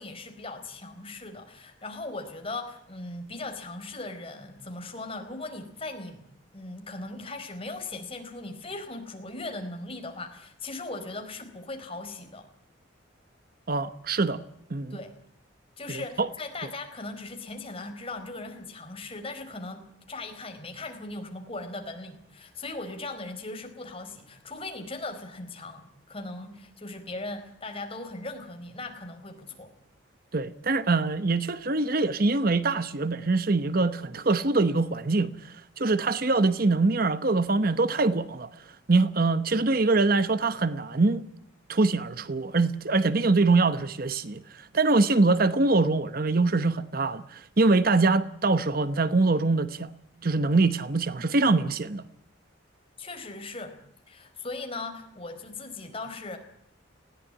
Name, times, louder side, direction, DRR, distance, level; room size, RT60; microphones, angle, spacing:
voice 1, 0.0-6.2 6.5-12.5 14.9-15.1 15.8-29.7 53.0-53.8 54.1-56.4, left 2 dB, 30° left, 4.3 m, -38 dB
voice 2, 13.7-14.4 14.7-15.0 15.9-16.3 30.3-38.5 38.9-41.2 41.7-44.4 44.7-49.9 50.2-52.0, right 3 dB, 50° right, 0.9 m, -24 dB
20.5 x 17.0 x 9.9 m
head